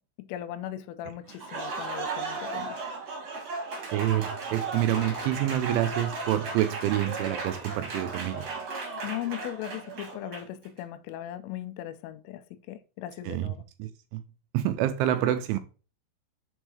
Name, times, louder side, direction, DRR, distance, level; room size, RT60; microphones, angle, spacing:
voice 1, 0.2-2.8 9.0-13.6, left 13 dB, 85° left, 3.1 m, -38 dB
Applause, 1.3-10.7, right 3 dB, 50° right, 2.0 m, -35 dB
voice 2, 3.9-8.4 13.3-13.5 13.8-14.2 14.5-15.6, right 12 dB, 80° right, 2.8 m, -27 dB
sound 1, 4.9-6.9, left 1 dB, 15° left, 2.7 m, -46 dB
7.1 x 4.5 x 4.7 m
omnidirectional pair, 5.8 m